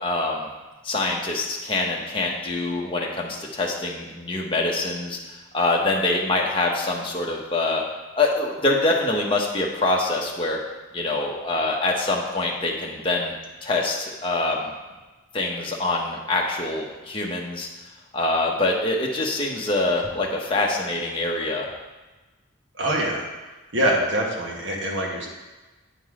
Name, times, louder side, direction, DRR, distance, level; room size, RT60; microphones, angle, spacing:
voice 1, 0.0-0.5 0.8-7.8 8.1-10.6 10.9-13.3 13.6-14.7 15.3-17.7 18.1-21.7, left 2 dB, 25° left, -1 dB, 1.0 m, -25 dB
voice 2, 22.8-23.3 23.7-25.3, right 1 dB, 65° right, -2 dB, 1.5 m, -24 dB
9.1 x 3.9 x 4.8 m, 1.2 s
head